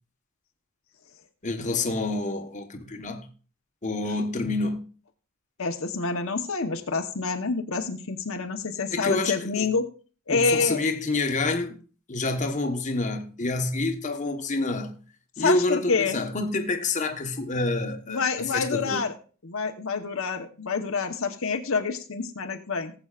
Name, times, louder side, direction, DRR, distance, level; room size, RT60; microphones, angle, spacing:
voice 1, 1.4-3.3 3.8-4.8 8.9-9.7 10.3-11.8 12.1-15.0 15.4-19.0, left 2 dB, 35° left, 1.2 m, -28 dB
voice 2, 5.6-9.9 10.3-10.8 15.4-16.2 18.1-19.1 19.4-22.9, left 4 dB, 65° left, 1.1 m, -27 dB
19.0 x 8.0 x 2.5 m
head